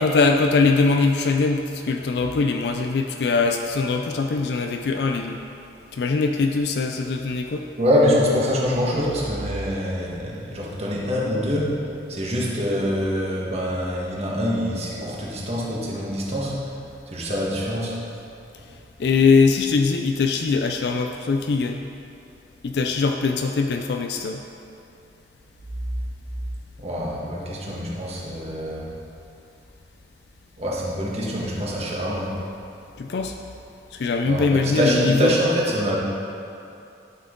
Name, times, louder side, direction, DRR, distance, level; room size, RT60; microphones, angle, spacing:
voice 1, 0.0-5.4 5.9-7.7 19.0-21.8 22.6-24.4 33.0-33.4 33.9-35.4, left 4 dB, 65° left, 4 dB, 0.4 m, -21 dB
voice 2, 7.8-11.8 12.1-16.6 17.1-18.0 26.8-28.9 30.6-32.3 34.2-36.0, equal, 35° right, -5 dB, 1.4 m, -24 dB
11.0 x 5.9 x 3.8 m, 2.7 s
head